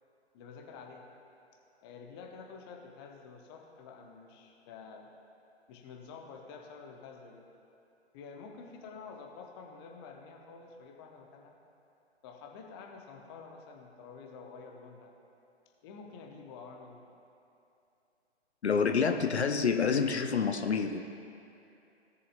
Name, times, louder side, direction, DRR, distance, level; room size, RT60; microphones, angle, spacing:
voice 1, 0.3-1.1 1.8-5.1 5.7-7.5 8.1-11.6 12.2-15.1 15.8-17.0 19.2-19.4, left 5 dB, 20° left, 1 dB, 0.9 m, -49 dB
voice 2, 18.6-21.0, left 5 dB, 70° left, 5 dB, 0.7 m, -28 dB
17.0 x 6.8 x 2.5 m, 2.8 s
figure-of-eight pair, 130°, 34 cm